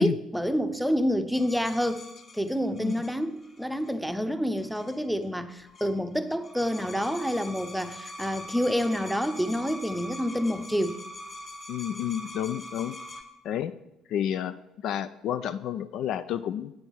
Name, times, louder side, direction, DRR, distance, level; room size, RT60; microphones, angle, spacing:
voice 1, 0.0-2.0 2.3-11.0, equal, ahead, 10 dB, 0.7 m, -28 dB
sound 1, 1.3-3.9 4.6-5.2 5.5-6.0 6.3-13.2, left 1 dB, 35° left, 1.7 m, -43 dB
voice 2, 11.7-13.0 13.4-13.7 14.1-16.7, left 10 dB, 55° left, 12 dB, 0.3 m, -30 dB
9.0 x 5.2 x 6.1 m, 0.90 s
figure-of-eight pair, 50°, 0 cm